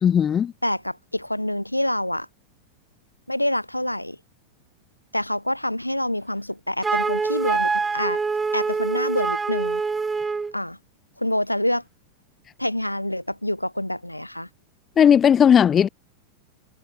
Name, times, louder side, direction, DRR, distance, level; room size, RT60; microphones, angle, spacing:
voice 1, 0.0-0.5 15.0-15.9, left 8 dB, 25° left, 0.5 m, -16 dB
voice 2, 0.6-2.3 3.3-4.2 5.1-8.2 8.5-9.8 10.5-10.8 11.2-11.8 12.6-14.5, left 1 dB, 90° left, 4.1 m, -26 dB
Wind instrument woodwind instrument, 6.8-10.5, right 4 dB, 15° right, 1.2 m, -25 dB
figure-of-eight pair, 90°, 0 cm